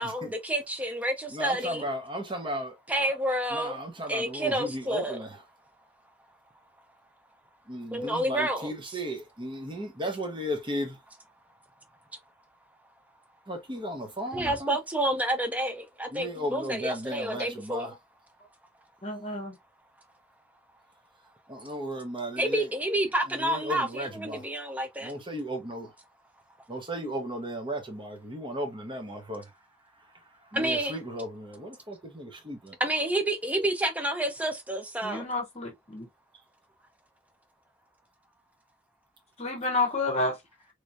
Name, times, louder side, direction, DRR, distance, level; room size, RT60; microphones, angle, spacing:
voice 1, 0.0-1.8 2.9-3.8 4.1-5.2 7.9-8.7 14.3-17.9 22.4-25.1 30.5-31.0 32.8-35.3, right 1 dB, 10° right, 0.7 m, -29 dB
voice 2, 1.3-3.2 3.5-5.4 7.7-11.0 13.5-14.8 16.1-17.9 21.5-22.7 23.3-24.5 25.0-25.9 26.7-29.5 30.5-32.8, equal, 25° right, 1.0 m, -35 dB
voice 3, 19.0-19.6 35.0-36.1 39.4-40.4, left 2 dB, 35° left, 0.9 m, -30 dB
3.2 x 3.1 x 2.5 m
head